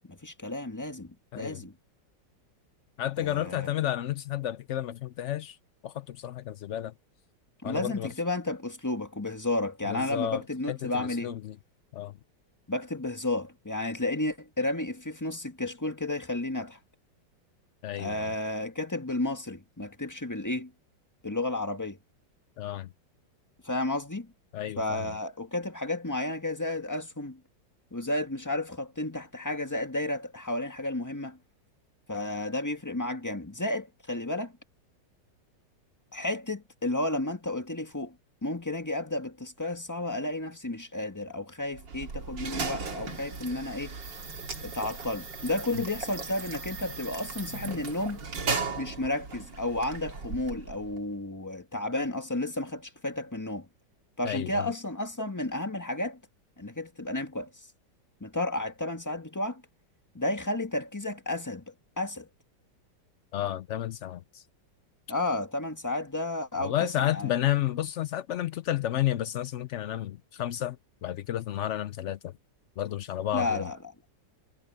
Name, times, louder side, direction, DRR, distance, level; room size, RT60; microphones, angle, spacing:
voice 1, 0.1-1.7 3.2-3.7 7.6-11.4 12.7-16.8 17.9-20.7 21.2-22.0 23.6-24.3 24.8-27.4 27.9-31.4 32.1-34.6 36.1-38.2 38.4-43.9 44.6-48.2 48.8-53.7 54.2-56.2 56.6-57.5 58.2-59.6 60.1-62.3 65.1-67.3 73.3-73.8, left 2 dB, 10° left, 1.7 m, -32 dB
voice 2, 3.0-5.6 5.8-6.9 7.6-8.1 9.8-11.6 11.9-12.2 17.8-18.3 22.6-22.9 24.5-25.1 45.7-45.8 54.2-54.7 63.3-64.4 66.6-70.8 71.0-72.3 72.8-73.7, left 12 dB, 85° left, 0.6 m, -31 dB
sound 1, 41.7-51.0, right 4 dB, 85° right, 3.0 m, -37 dB
omnidirectional pair, 1.9 m